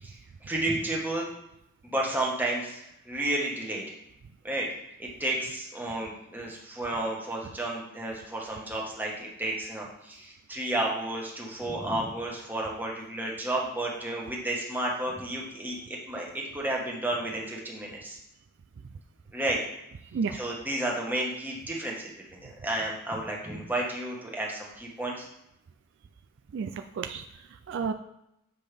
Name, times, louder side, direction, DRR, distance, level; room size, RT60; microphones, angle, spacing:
voice 1, 0.4-1.3 1.8-3.8 4.4-4.7 5.0-18.2 19.3-19.6 20.3-22.1 22.4-25.3, right 1 dB, 10° right, -3 dB, 1.3 m, -32 dB
voice 2, 26.5-27.9, right 5 dB, 60° right, 6 dB, 0.3 m, -32 dB
7.6 x 5.2 x 3.4 m, 0.82 s
head